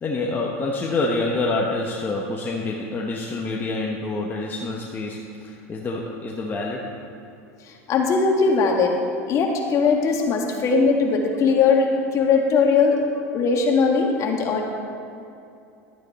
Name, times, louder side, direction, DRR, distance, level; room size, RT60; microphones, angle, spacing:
voice 1, 0.0-6.9, left 2 dB, 25° left, -2 dB, 1.1 m, -27 dB
voice 2, 7.9-8.9 9.3-13.0 13.3-14.6, left 4 dB, 45° left, 1 dB, 1.7 m, -19 dB
11.5 x 9.5 x 4.2 m, 2.6 s
hypercardioid pair, 105°, 8 cm